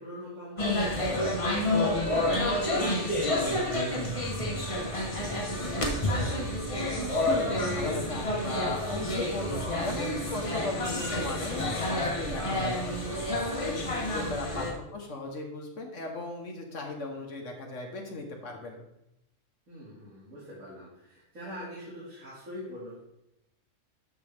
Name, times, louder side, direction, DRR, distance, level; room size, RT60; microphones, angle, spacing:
voice 1, 0.0-6.2 14.5-14.7 19.7-23.0, equal, 85° right, -8 dB, 2.7 m, -45 dB
sound 1, 0.6-14.7, left 1 dB, 25° left, 1.1 m, -29 dB
voice 2, 7.2-18.8, left 3 dB, 65° left, 2 dB, 1.4 m, -37 dB
12.0 x 4.7 x 3.4 m, 0.86 s
omnidirectional pair, 1.4 m